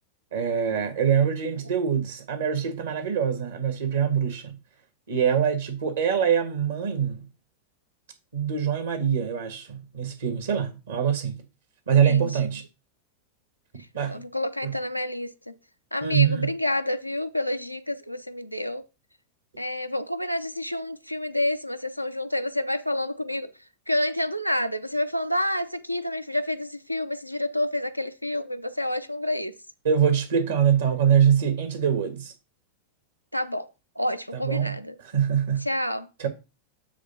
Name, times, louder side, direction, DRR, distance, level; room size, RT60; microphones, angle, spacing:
voice 1, 0.3-4.6 5.1-7.3 8.3-11.4 11.9-12.6 13.9-14.2 14.6-14.7 16.0-16.5 29.8-32.3 34.3-34.8 35.1-35.7 36.2-36.3, right 8 dB, 65° right, 1.7 m, -24 dB
voice 2, 12.0-12.5 14.1-15.6 15.9-18.8 19.6-23.5 23.9-29.5 33.3-33.7 34.0-35.0 35.6-36.1, left 1 dB, 90° left, 0.6 m, -29 dB
8.5 x 3.5 x 5.8 m
figure-of-eight pair, 90°, 0 cm